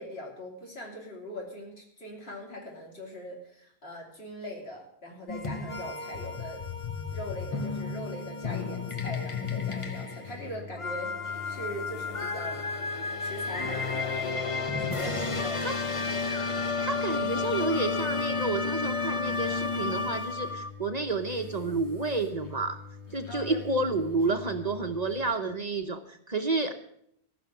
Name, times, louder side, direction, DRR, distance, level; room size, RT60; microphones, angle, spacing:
voice 1, 0.0-6.6 7.1-11.1 11.5-12.6 13.2-15.7 16.0-16.1 23.3-23.7, equal, 70° left, -1 dB, 3.3 m, -41 dB
sound 1, 5.3-20.7, left 4 dB, 30° left, 0.9 m, -32 dB
sound 2, 10.2-25.2, left 6 dB, 85° left, 2.0 m, -45 dB
voice 2, 16.8-22.8 23.1-26.7, right 3 dB, 40° right, 7 dB, 1.0 m, -30 dB
14.5 x 6.2 x 8.6 m, 0.71 s
omnidirectional pair, 1.1 m